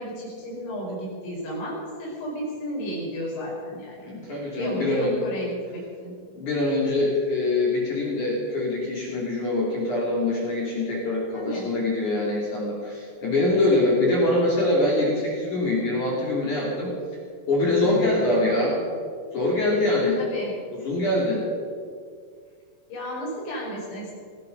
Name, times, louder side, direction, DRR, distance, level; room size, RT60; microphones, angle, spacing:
voice 1, 0.0-4.3 4.6-6.1 11.3-11.7 17.8-18.3 20.2-20.5 22.9-24.1, equal, 65° left, -4 dB, 7.2 m, -33 dB
voice 2, 4.0-5.2 6.3-16.9 17.5-18.8 19.3-20.3 20.8-21.4, left 2 dB, 45° left, -4 dB, 3.7 m, -24 dB
17.5 x 15.5 x 5.3 m, 2.1 s
omnidirectional pair, 5.7 m